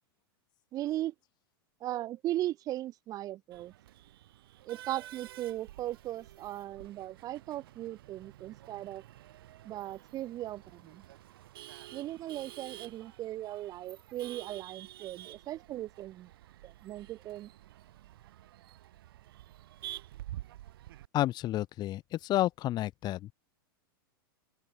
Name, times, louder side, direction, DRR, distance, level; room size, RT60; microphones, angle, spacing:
voice 1, 0.7-1.1 1.8-3.7 4.7-9.0 9.6-11.0 11.9-16.3 16.6-17.5, right 14 dB, 30° right, 0.4 m, -38 dB
Male speech man speaking / Laughter / Chatter, 3.5-21.1, right 14 dB, 70° right, 1.3 m, -50 dB
voice 2, 21.1-23.3, left 14 dB, 35° left, 1.2 m, -30 dB
open air
hypercardioid pair, 120°, 12 cm